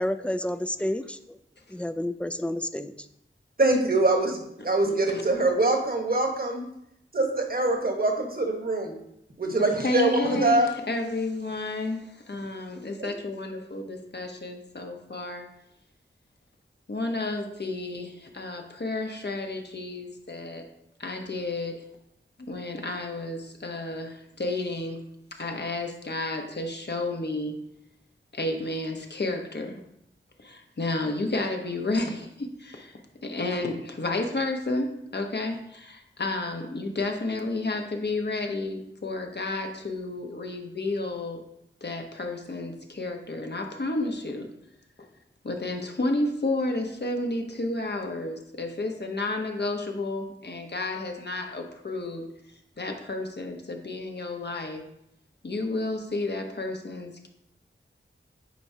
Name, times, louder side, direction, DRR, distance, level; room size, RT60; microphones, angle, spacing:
voice 1, 0.0-1.4 1.7-2.9 4.9-5.0, left 1 dB, 5° left, 10 dB, 0.4 m, -30 dB
voice 2, 3.6-6.6 7.1-9.0 9.4-10.7 13.0-13.1, right 2 dB, 45° right, 3 dB, 1.3 m, -24 dB
voice 3, 9.6-15.5 16.9-20.6 21.0-21.8 22.4-25.0 25.3-27.6 28.3-29.8 30.4-34.9 35.1-41.4 41.8-44.5 45.4-52.2 52.8-54.8 55.4-57.3, left 2 dB, 55° left, 3 dB, 1.0 m, -31 dB
9.1 x 4.6 x 2.8 m, 0.80 s
wide cardioid pair, 45°, 21 cm